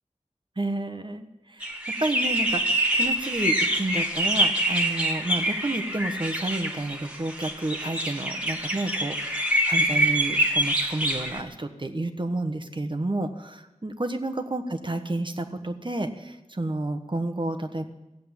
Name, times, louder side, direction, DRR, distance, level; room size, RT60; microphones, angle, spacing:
voice 1, 0.6-17.8, right 2 dB, 40° right, 7 dB, 1.2 m, -30 dB
sound 1, 1.6-11.4, right 1 dB, 10° right, 1.6 m, -26 dB
15.5 x 7.7 x 8.9 m, 1.0 s
wide cardioid pair, 60°, 13 cm